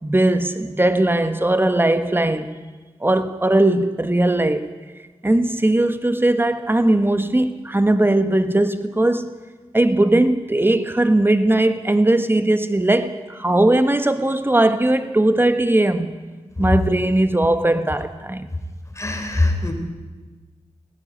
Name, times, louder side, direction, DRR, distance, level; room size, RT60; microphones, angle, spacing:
voice 1, 0.0-2.5 3.0-4.7 5.2-9.3 9.7-16.1 16.6-18.5, right 1 dB, 20° right, 1.4 m, -19 dB
voice 2, 19.0-19.7, left 2 dB, 25° left, 3.8 m, -21 dB
18.0 x 15.5 x 9.9 m
wide cardioid pair, 80°, 12 cm